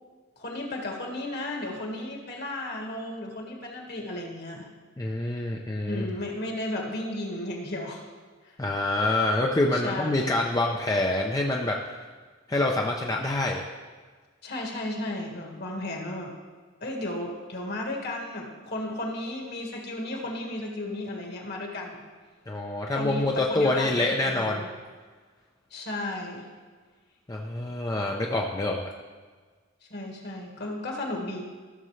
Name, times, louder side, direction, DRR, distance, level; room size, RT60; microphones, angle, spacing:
voice 1, 0.4-4.7 5.9-8.0 8.4-8.6 9.7-10.4 14.4-16.3 16.8-22.0 22.9-24.7 25.7-26.5 29.9-31.4, left 1 dB, 55° left, 0 dB, 1.7 m, -34 dB
voice 2, 5.0-6.1 8.6-11.8 12.5-13.6 22.5-24.6 27.3-28.9, left 2 dB, 20° left, 0 dB, 0.5 m, -26 dB
14.5 x 6.7 x 3.2 m, 1.5 s
head